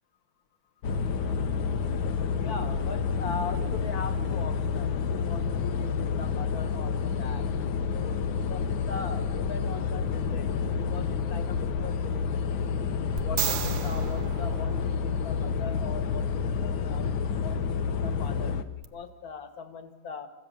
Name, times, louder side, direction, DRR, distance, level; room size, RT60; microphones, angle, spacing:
sound 1, 0.8-18.6, left 6 dB, 70° left, 1.6 m, -29 dB
voice 1, 2.4-7.5 7.9-12.6 13.2-17.1 17.4-20.3, left 5 dB, 45° left, 9 dB, 1.9 m, -40 dB
sound 2, 13.2-15.4 18.8-18.9, right 9 dB, 60° right, 1.2 m, -34 dB
29.0 x 15.0 x 7.0 m, 1.3 s
omnidirectional pair, 2.3 m